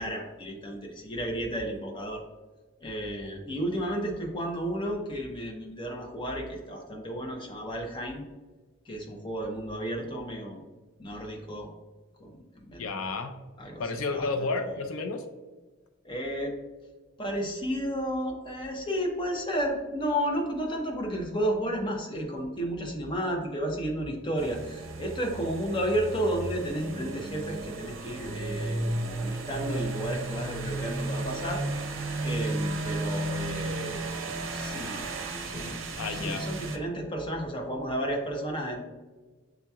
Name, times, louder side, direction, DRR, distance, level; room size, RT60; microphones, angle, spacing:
voice 1, 0.0-2.2 2.8-8.2 8.9-10.6 11.0-11.7 12.2-12.9 13.6-13.8 14.1-14.3 16.0-16.5 17.2-31.6 32.2-34.2 34.5-35.1 35.5-38.8, equal, 25° left, 1 dB, 0.7 m, -32 dB
voice 2, 12.8-13.4 13.8-15.2 36.0-36.4, left 3 dB, 85° left, 7 dB, 0.5 m, -31 dB
sound 1, 24.4-36.8, right 2 dB, 65° right, 0.6 m, -34 dB
7.8 x 2.8 x 2.3 m, 1.3 s
head